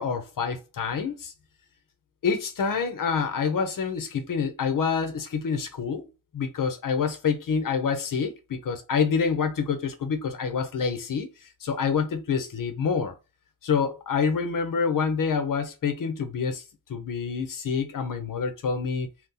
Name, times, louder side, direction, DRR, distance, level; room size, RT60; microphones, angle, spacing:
voice 1, 0.0-1.3 2.2-6.1 6.3-11.3 11.6-13.1 13.6-16.6 16.9-19.1, left 6 dB, 55° left, 0.9 m, -27 dB
2.8 x 2.4 x 3.8 m
supercardioid pair, 50°, 39 cm